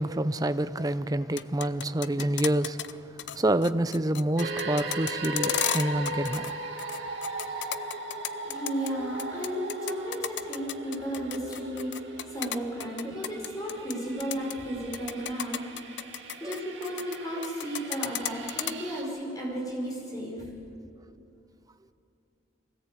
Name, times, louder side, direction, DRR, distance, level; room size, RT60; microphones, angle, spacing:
voice 1, 0.0-3.0 3.3-6.5 16.4-16.5, right 1 dB, 20° right, 0.6 m, -27 dB
sound 1, 1.2-2.9 3.2-3.4 3.6-6.5 6.8-8.9 9.2-13.9 14.2-14.5 14.9-17.2 17.4-18.7, left 11 dB, 65° left, 0.6 m, -33 dB
sound 2, 4.4-19.0, right 2 dB, 65° right, 2.8 m, -38 dB
voice 2, 8.4-16.0 16.4-20.5, equal, 20° left, 5.4 m, -34 dB
24.0 x 17.5 x 8.5 m
head